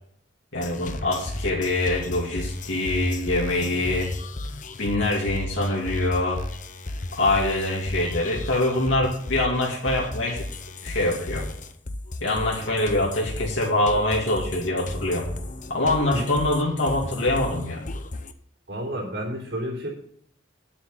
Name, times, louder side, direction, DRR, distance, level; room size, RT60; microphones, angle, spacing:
voice 1, 0.5-4.1 4.8-6.4 7.2-10.4 10.8-11.5 12.2-15.3 15.7-17.8, left 2 dB, 75° left, -3 dB, 2.6 m, -24 dB
sound 1, 0.5-18.3, left 2 dB, 40° left, 0.8 m, -35 dB
voice 2, 18.7-19.9, equal, 65° right, -2 dB, 3.5 m, -30 dB
9.7 x 8.3 x 5.8 m, 0.67 s
head